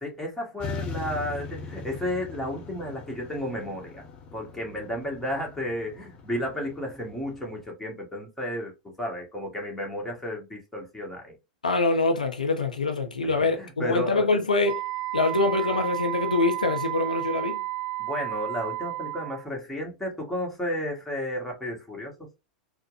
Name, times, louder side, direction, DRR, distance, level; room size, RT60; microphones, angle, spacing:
voice 1, 0.0-4.0 4.3-8.7 9.0-11.4 13.4-14.3 18.0-22.1, left 1 dB, 5° left, 1.4 m, -32 dB
sound 1, 0.6-7.7, left 4 dB, 30° left, 0.9 m, -40 dB
voice 2, 11.6-14.8 15.1-17.6, left 3 dB, 80° left, 0.5 m, -24 dB
Wind instrument woodwind instrument, 14.6-19.4, right 18 dB, 40° right, 0.3 m, -32 dB
4.2 x 2.1 x 2.5 m
figure-of-eight pair, 90°, 4 cm